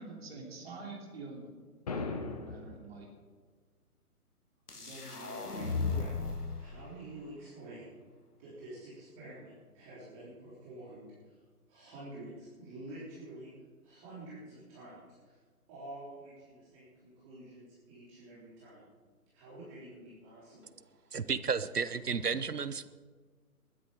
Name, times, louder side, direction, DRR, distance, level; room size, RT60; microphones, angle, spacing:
voice 1, 0.0-1.5 1.9-3.1, right 3 dB, 40° right, 0 dB, 3.1 m, -46 dB
sound 1, 1.9-2.9, left 4 dB, 25° left, 0.8 m, -37 dB
sound 2, 4.7-6.6, left 4 dB, 80° left, 1.7 m, -35 dB
voice 2, 4.7-8.0 8.4-11.4 11.7-13.5 13.8-15.4 15.7-18.9 19.3-20.8, right 1 dB, 20° right, -9 dB, 3.4 m, -49 dB
voice 3, 21.1-22.8, right 5 dB, 85° right, 14 dB, 1.0 m, -32 dB
20.5 x 10.0 x 5.0 m, 1.5 s
figure-of-eight pair, 140°, 45 cm